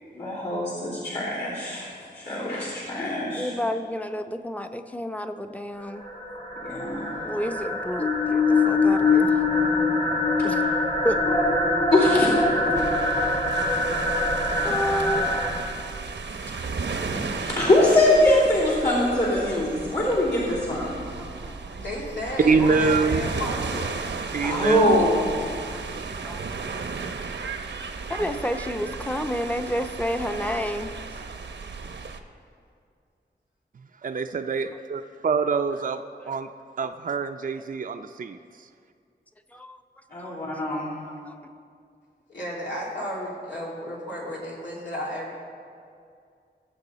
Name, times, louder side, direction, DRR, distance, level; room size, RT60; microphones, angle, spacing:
voice 1, 0.1-1.9 2.1-3.5 6.6-7.1 11.9-12.4 16.5-16.7 17.1-21.0 24.4-25.5 40.1-40.9, left 1 dB, 65° left, -10 dB, 3.2 m, -23 dB
voice 2, 3.3-6.1 7.2-9.4 10.4-10.6 11.0-11.2 14.0-14.1 14.6-15.3 21.2-21.8 22.3-22.4 25.7-25.8 26.2-26.4 26.8-27.5 28.1-31.0 36.8-36.9 39.5-39.8 40.2-40.4 41.3-41.4, equal, 10° left, 7 dB, 0.7 m, -30 dB
sound 1, 5.8-15.5, left 3 dB, 40° left, 2.6 m, -23 dB
sound 2, 12.8-32.2, right 4 dB, 80° right, 0.8 m, -34 dB
voice 3, 21.7-24.0 42.3-45.3, left 1 dB, 90° left, -5 dB, 3.1 m, -33 dB
voice 4, 22.4-23.2 24.3-25.1 34.0-36.0 36.3-36.5 36.8-38.4, right 4 dB, 50° right, 6 dB, 0.4 m, -25 dB
20.5 x 7.6 x 4.0 m, 2.3 s
wide cardioid pair, 95°, 18 cm